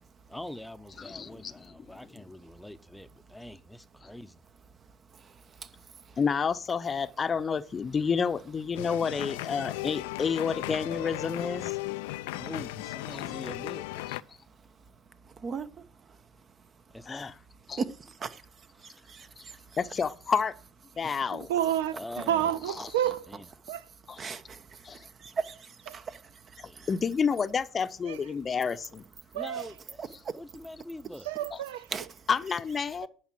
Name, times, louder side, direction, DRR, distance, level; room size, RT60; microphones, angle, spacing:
voice 1, 0.3-4.4 12.3-14.2 16.9-17.3 18.8-19.6 21.0-21.3 21.9-22.6 23.3-23.5 26.7-26.9 29.3-30.0 30.3-31.3, left 1 dB, 5° left, 0.8 m, -44 dB
voice 2, 1.0-1.7 6.2-11.7 17.1-17.3 17.7-17.8 19.8-20.5 21.0-21.5 24.1-24.2 24.8-25.0 26.9-29.0 32.3-33.1, left 6 dB, 35° left, 0.7 m, -29 dB
voice 3, 4.8-6.2 12.1-12.4 14.3-17.0 17.8-19.8 22.8-23.1 23.6-23.8 24.2-26.9 29.6-29.7 30.0-30.4 31.9-32.3, right 5 dB, 40° right, 1.0 m, -41 dB
sound 1, 8.8-14.2, left 18 dB, 85° left, 0.4 m, -36 dB
voice 4, 21.3-21.9 22.3-23.3 23.7-23.9 28.0-28.2 29.3-29.6 31.3-31.9, right 11 dB, 90° right, 0.5 m, -29 dB
11.0 x 4.8 x 7.5 m
hypercardioid pair, 75°, 0 cm